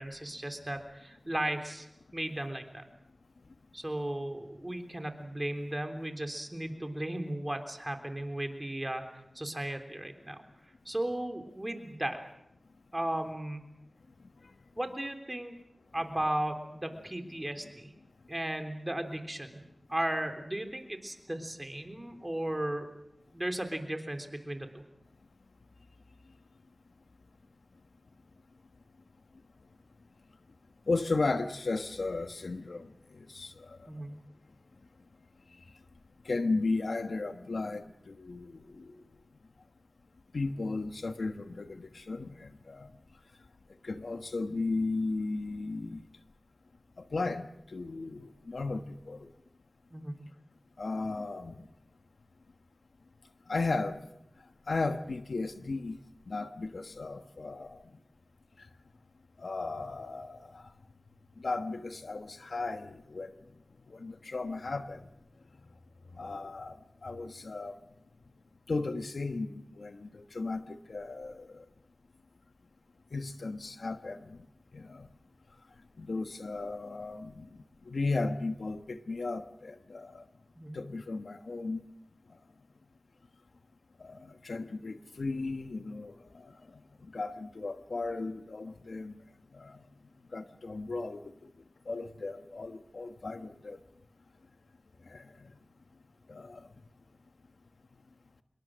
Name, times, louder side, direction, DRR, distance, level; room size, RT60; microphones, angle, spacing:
voice 1, 0.0-1.9 2.1-2.8 3.7-10.4 10.9-12.2 12.9-13.7 14.8-15.6 15.9-17.9 18.3-19.6 19.9-22.9 23.3-24.8 33.9-34.1 49.9-50.3 80.6-80.8, right 1 dB, 20° right, 3.5 m, -35 dB
voice 2, 30.9-33.8 36.2-39.0 40.3-42.9 43.8-46.0 47.0-49.3 50.8-51.7 53.5-54.0 54.7-56.0 56.3-57.8 58.6-58.7 59.4-60.7 61.4-63.3 63.9-65.0 66.2-66.7 67.0-67.8 68.7-71.6 73.1-74.4 74.7-75.1 76.0-77.5 77.8-80.2 80.7-81.8 84.0-86.5 87.1-89.1 89.5-89.8 90.3-91.2 91.9-93.8 95.1-95.5 96.3-96.7, left 3 dB, 80° left, 1.2 m, -35 dB
26.0 x 21.5 x 6.3 m
wide cardioid pair, 45°, 0 cm